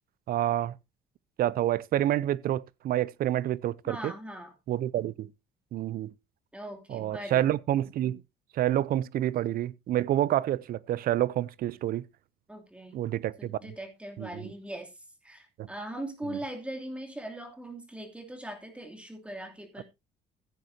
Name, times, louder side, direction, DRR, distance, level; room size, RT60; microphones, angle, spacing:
voice 1, 0.3-0.7 1.4-4.1 4.7-5.3 5.7-6.1 6.9-8.2 8.5-12.0 12.9-13.7 14.2-14.5 15.6-15.7 16.3-16.4, right 12 dB, 60° right, 0.6 m, -28 dB
voice 2, 3.8-4.5 6.5-7.5 12.5-13.0 13.4-14.9 15.2-19.8, right 1 dB, 5° right, 2.9 m, -40 dB
15.0 x 9.3 x 2.8 m
cardioid pair, 110°, 17 cm